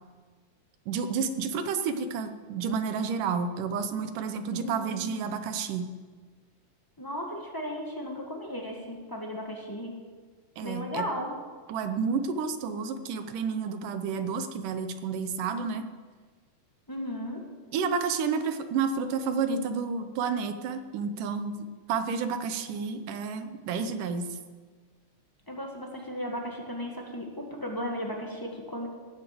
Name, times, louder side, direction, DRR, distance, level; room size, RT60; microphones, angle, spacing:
voice 1, 0.9-5.9 10.6-11.1 11.7-15.8 17.7-21.6 21.9-24.4, right 5 dB, 85° right, 9 dB, 2.6 m, -30 dB
voice 2, 4.5-5.2 7.0-9.9 10.6-11.3 16.9-17.4 25.5-28.9, equal, 10° left, 0 dB, 1.0 m, -35 dB
18.5 x 7.6 x 7.8 m, 1.5 s
omnidirectional pair, 3.6 m